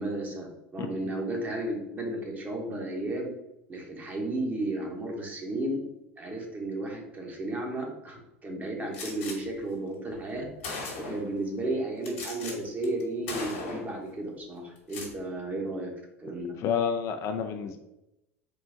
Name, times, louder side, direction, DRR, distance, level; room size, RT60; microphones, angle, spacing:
voice 1, 0.0-3.3 3.7-5.9 6.2-10.5 11.0-15.9 16.2-16.6, right 2 dB, 25° right, 1 dB, 1.1 m, -33 dB
Gunshot gunfire, 8.9-9.4 10.2-10.3 10.6-11.3 12.0-12.5 12.8-13.0 13.3-13.9 14.8-15.1, left 3 dB, 70° left, 1.2 m, -37 dB
voice 2, 16.6-17.8, left 7 dB, 45° left, 6 dB, 0.4 m, -29 dB
3.8 x 2.4 x 3.7 m, 0.88 s
hypercardioid pair, 80°, 7 cm